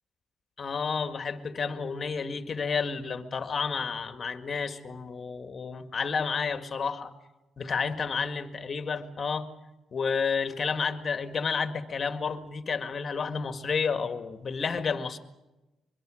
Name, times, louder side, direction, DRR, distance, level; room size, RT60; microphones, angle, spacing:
voice 1, 0.6-7.1 7.6-9.5 9.9-15.2, left 5 dB, 40° left, 7 dB, 2.0 m, -31 dB
23.5 x 23.0 x 6.5 m, 1.0 s
cardioid pair, 90°, 0 cm